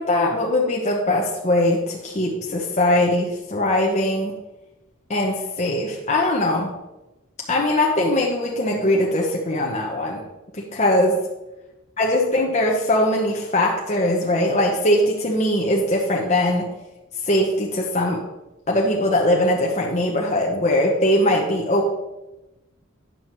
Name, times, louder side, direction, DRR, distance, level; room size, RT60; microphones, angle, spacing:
voice 1, 0.0-4.3 5.1-6.7 7.5-10.2 10.5-11.2 12.0-16.7 17.2-18.2 18.7-21.9, left 1 dB, 35° left, -2 dB, 0.9 m, -21 dB
9.4 x 7.0 x 3.0 m, 1.0 s
head